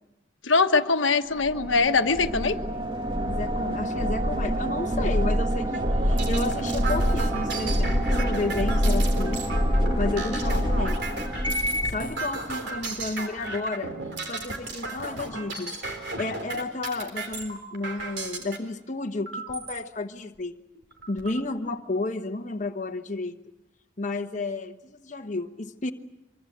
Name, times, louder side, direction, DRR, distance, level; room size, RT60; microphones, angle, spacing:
voice 1, 0.4-2.6, left 4 dB, 85° left, 7 dB, 1.3 m, -22 dB
sound 1, 1.4-12.0, equal, 25° right, 2.2 m, -26 dB
voice 2, 3.3-9.5 10.0-11.0 11.8-13.9 14.3-15.7 16.2-20.6 21.1-23.3 24.0-25.9, left 2 dB, 40° left, 4 dB, 1.1 m, -32 dB
sound 2, 5.7-18.6 19.3-19.8 20.4-20.5 20.8-21.4, right 3 dB, 60° right, 3.8 m, -35 dB
24.5 x 24.5 x 8.0 m, 0.94 s
head